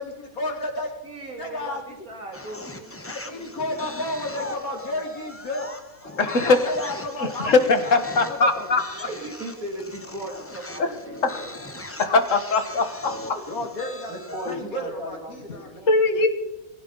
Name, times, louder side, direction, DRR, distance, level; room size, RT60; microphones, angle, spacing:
voice 1, 0.0-0.9 1.4-2.0 3.1-5.7 6.0-7.5 7.8-8.7 13.5-15.8, left 2 dB, 85° left, 1 dB, 3.2 m, -32 dB
voice 2, 1.0-3.0 3.3-3.4 7.8-8.3 8.9-11.5 11.7-11.8 13.3-13.7 14.1-15.9, right 2 dB, 80° right, 2 dB, 3.2 m, -37 dB
sound 1, 2.3-14.7, left 1 dB, 10° left, 0.8 m, -39 dB
voice 3, 6.2-6.6 7.2-8.8 10.8-10.9 11.2-11.4 12.0-13.4 14.5-14.6 15.9-16.3, left 3 dB, 65° left, 8 dB, 1.9 m, -21 dB
21.0 x 15.5 x 4.0 m, 0.98 s
omnidirectional pair, 1.5 m